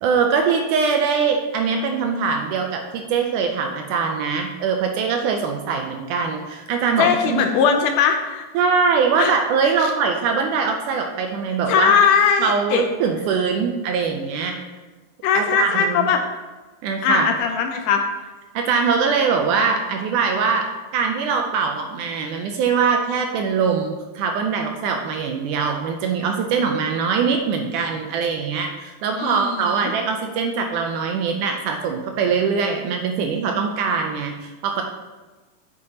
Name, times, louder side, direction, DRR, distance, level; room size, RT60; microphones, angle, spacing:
voice 1, 0.0-7.4 8.5-12.0 12.4-14.6 15.3-16.1 16.8-17.3 18.6-34.8, right 5 dB, 80° right, 3 dB, 1.9 m, -22 dB
voice 2, 7.0-8.5 9.2-9.3 9.8-9.9 11.7-12.8 15.2-16.2 17.0-18.1 29.1-29.9, left 6 dB, 80° left, 5 dB, 2.0 m, -19 dB
8.1 x 7.5 x 2.9 m, 1.2 s
omnidirectional pair, 4.0 m